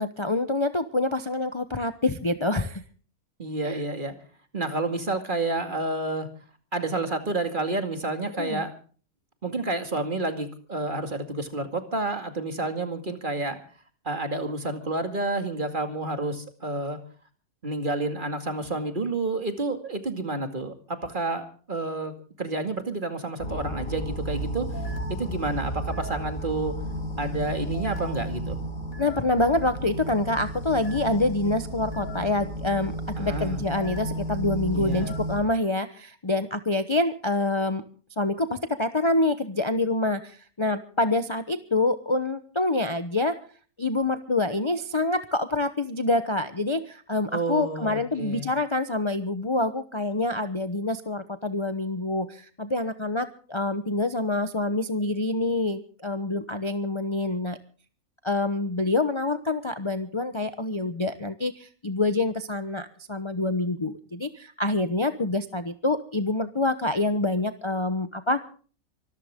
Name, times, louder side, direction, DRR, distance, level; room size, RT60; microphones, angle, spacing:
voice 1, 0.0-2.8 3.6-3.8 8.4-8.6 29.0-37.8 38.2-43.4 43.8-57.6 58.2-68.6, left 2 dB, 25° left, 9 dB, 0.9 m, -26 dB
voice 2, 3.4-4.1 4.5-6.3 6.7-8.7 9.4-13.6 14.0-17.0 17.6-24.8 25.1-26.7 27.2-28.6 33.2-33.6 34.7-35.1 47.3-48.5, right 2 dB, 35° right, 7 dB, 2.4 m, -30 dB
sound 1, 23.4-35.5, right 1 dB, 70° left, 5.0 m, -33 dB
25.0 x 13.5 x 3.7 m, 0.41 s
omnidirectional pair, 1.5 m